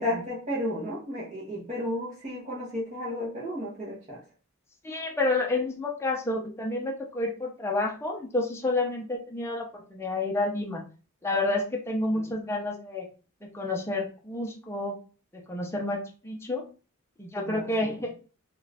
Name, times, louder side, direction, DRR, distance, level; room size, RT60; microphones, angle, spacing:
voice 1, 0.0-4.2 12.1-12.3 17.4-18.1, left 1 dB, 30° right, -8 dB, 0.9 m, -33 dB
voice 2, 4.8-10.8 11.2-13.1 13.5-14.9 15.3-16.6 17.2-18.1, left 2 dB, 10° left, 0 dB, 0.5 m, -29 dB
2.4 x 2.4 x 3.2 m, 0.37 s
head